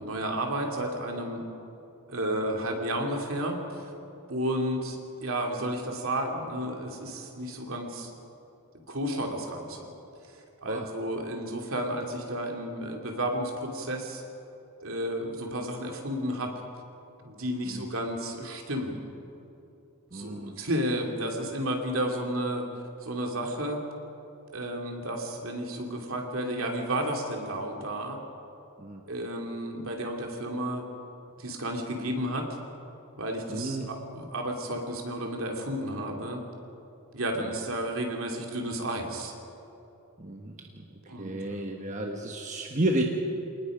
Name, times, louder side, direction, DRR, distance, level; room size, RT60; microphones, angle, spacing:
voice 1, 0.0-1.4 2.1-3.9 4.3-8.1 8.9-9.8 10.3-14.2 14.8-16.5 17.2-19.0 20.1-22.6 23.0-23.8 24.5-28.2 29.1-30.8 31.4-32.5 33.2-36.4 37.1-39.3 41.1-42.0, right 1 dB, 65° right, 1 dB, 2.9 m, -32 dB
voice 2, 20.1-20.6 28.8-29.0 33.5-33.9 40.2-40.8 41.2-43.0, right 1 dB, 35° right, 2 dB, 1.2 m, -32 dB
27.5 x 19.0 x 5.1 m, 2.8 s
head